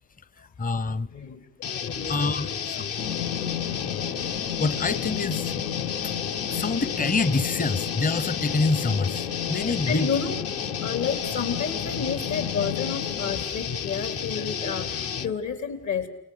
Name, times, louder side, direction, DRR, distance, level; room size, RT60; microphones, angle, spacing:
voice 1, 0.6-1.1 2.1-2.5 3.3-3.5 4.1-4.2 4.6-5.5 6.0-6.1 6.5-10.1, left 3 dB, 30° left, 0.9 m, -26 dB
voice 2, 1.1-1.4 1.7-2.9 9.9-10.4 10.8-16.1, left 6 dB, 70° left, 4.2 m, -31 dB
sound 1, 1.6-15.3, left 7 dB, 50° left, 1.0 m, -32 dB
sound 2, 3.0-13.4, left 9 dB, 90° left, 1.0 m, -33 dB
29.5 x 20.0 x 6.8 m
cardioid pair, 90°, 30 cm